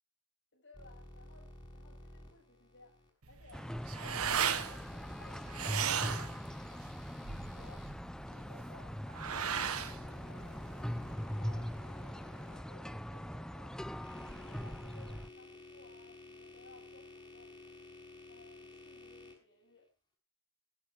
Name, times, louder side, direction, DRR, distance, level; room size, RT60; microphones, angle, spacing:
voice 1, 0.5-3.7 4.7-6.8 7.4-7.9 8.3-9.0 9.4-10.7 11.3-14.1 14.4-17.5 18.3-19.9, left 3 dB, 55° left, 1 dB, 7.8 m, -60 dB
sound 1, 0.7-3.1 4.1-7.9 8.9-13.3 13.8-19.4, left 2 dB, 20° left, 6.2 m, -54 dB
sound 2, 3.2-11.1, right 8 dB, 75° right, 1.3 m, -37 dB
sound 3, 3.5-15.3, equal, 5° left, 0.7 m, -41 dB
19.5 x 9.9 x 4.6 m, 0.32 s
head